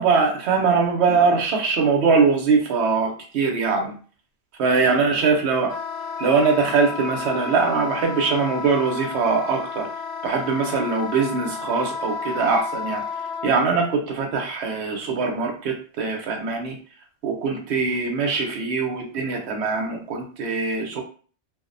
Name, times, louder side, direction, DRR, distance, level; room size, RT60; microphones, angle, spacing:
voice 1, 0.0-4.0 4.6-5.7 6.2-9.9 10.2-13.0 13.4-16.8 17.2-21.0, right 4 dB, 65° right, 2 dB, 0.9 m, -22 dB
Wind instrument woodwind instrument, 5.6-13.5, left 5 dB, 65° left, 0.7 m, -32 dB
2.5 x 2.0 x 2.5 m, 0.40 s
omnidirectional pair, 1.3 m